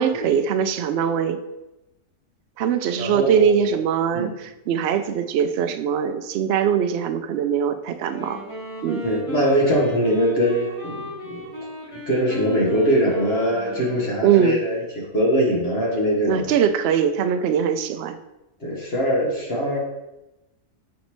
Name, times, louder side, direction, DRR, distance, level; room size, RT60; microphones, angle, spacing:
voice 1, 0.0-1.4 2.6-8.4 8.8-9.1 14.2-14.6 16.3-18.2, right 8 dB, 80° right, 8 dB, 0.5 m, -22 dB
voice 2, 3.0-3.6 4.1-4.3 9.0-11.5 11.9-14.8 15.1-16.5 18.6-19.8, equal, 45° left, -4 dB, 1.6 m, -22 dB
Wind instrument woodwind instrument, 7.9-14.5, left 3 dB, 65° left, 2.7 m, -36 dB
5.9 x 5.2 x 3.1 m, 0.96 s
omnidirectional pair, 1.6 m